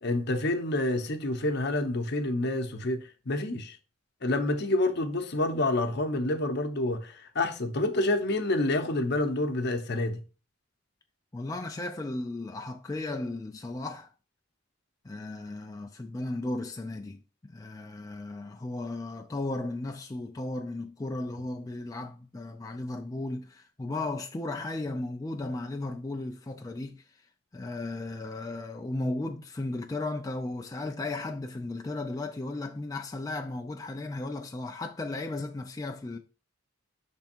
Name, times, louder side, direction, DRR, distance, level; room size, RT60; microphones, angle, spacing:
voice 1, 0.0-3.8 4.2-10.2, left 2 dB, 55° left, 0.8 m, -28 dB
voice 2, 11.3-14.1 15.0-17.2 17.5-27.0 27.5-36.2, left 2 dB, 20° left, 0.4 m, -35 dB
6.2 x 3.5 x 4.4 m
head